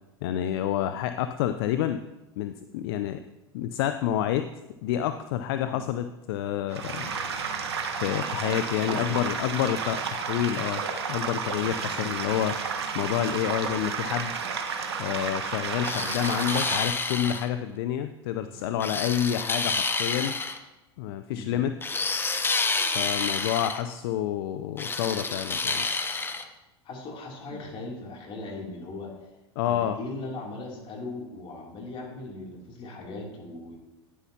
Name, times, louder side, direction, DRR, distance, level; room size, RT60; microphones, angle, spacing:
voice 1, 0.2-2.0 2.4-3.2 3.5-4.5 4.8-7.1 8.0-10.8 11.1-12.6 12.9-14.3 15.0-20.4 21.0-21.7 22.9-25.9 29.6-30.0, left 11 dB, 65° left, 10 dB, 0.5 m, -28 dB
sound 1, 6.7-16.8, right 5 dB, 85° right, 1.1 m, -32 dB
voice 2, 8.9-9.2 11.7-12.1 18.5-18.6 21.3-21.6 26.8-29.1 29.7-33.8, left 2 dB, 40° left, -1 dB, 2.9 m, -39 dB
sound 2, 15.8-17.5 18.8-20.6 21.8-23.8 24.8-26.4, left 4 dB, 15° left, 0.8 m, -29 dB
10.0 x 9.7 x 2.8 m, 1.0 s
hypercardioid pair, 90°, 13 cm